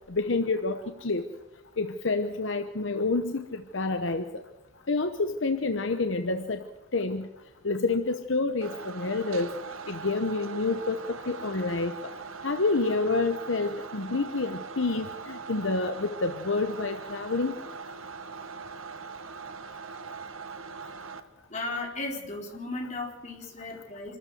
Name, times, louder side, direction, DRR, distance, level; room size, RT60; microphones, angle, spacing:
voice 1, 0.1-1.2 1.8-4.4 4.9-6.7 6.9-7.3 7.6-9.6 9.9-12.1 12.4-17.6, left 3 dB, 65° left, 8 dB, 0.9 m, -28 dB
sound 1, 8.6-21.2, right 5 dB, 90° right, 1.3 m, -41 dB
voice 2, 21.5-24.2, left 2 dB, 35° left, -1 dB, 4.4 m, -35 dB
26.0 x 13.5 x 8.0 m, 1.0 s
head